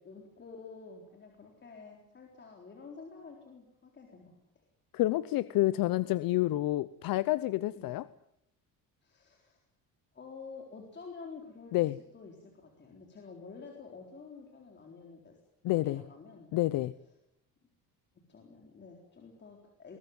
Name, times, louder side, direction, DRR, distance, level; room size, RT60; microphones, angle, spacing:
voice 1, 0.1-4.7 7.7-7.9 9.0-9.6 10.1-15.3 15.7-16.5 18.3-20.0, left 4 dB, 30° left, 1 dB, 4.0 m, -49 dB
voice 2, 4.9-8.0 11.7-12.0 15.6-16.0 16.5-16.9, left 16 dB, 70° left, 16 dB, 0.8 m, -29 dB
22.0 x 19.0 x 9.4 m, 0.78 s
cardioid pair, 145°, 35 cm